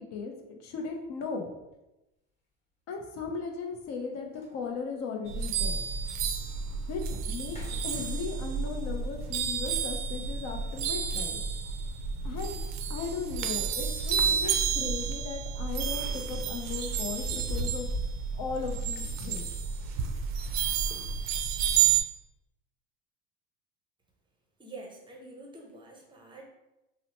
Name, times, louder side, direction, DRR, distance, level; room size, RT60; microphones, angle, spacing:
voice 1, 0.0-1.5 2.9-5.9 6.9-11.4 12.2-12.6 12.9-17.9 18.3-19.5, left 5 dB, 55° left, 2 dB, 0.6 m, -37 dB
sound 1, 1.6-1.7 3.5-3.6 4.0-4.1 4.3-4.9 5.5-5.6 6.1-6.2 6.6-7.0 7.4-8.5 10.6-11.2 14.0-15.0 15.4-15.6 16.9-18.3, left 1 dB, 20° left, 1.2 m, -40 dB
sound 2, 5.3-22.0, right 7 dB, 60° right, 0.4 m, -31 dB
voice 2, 24.6-26.5, right 2 dB, 15° right, 0 dB, 0.6 m, -46 dB
2.9 x 2.0 x 2.9 m, 0.95 s
supercardioid pair, 100°, 32 cm